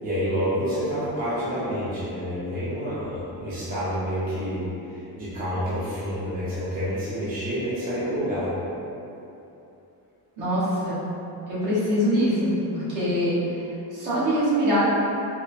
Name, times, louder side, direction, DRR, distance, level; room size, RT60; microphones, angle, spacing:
voice 1, 0.0-4.6 5.2-8.5, equal, 20° right, -11 dB, 0.5 m, -28 dB
voice 2, 10.4-11.0 11.5-13.4 13.9-14.8, equal, 50° right, -10 dB, 1.2 m, -23 dB
4.2 x 2.1 x 2.5 m, 2.8 s
cardioid pair, 155°, 41 cm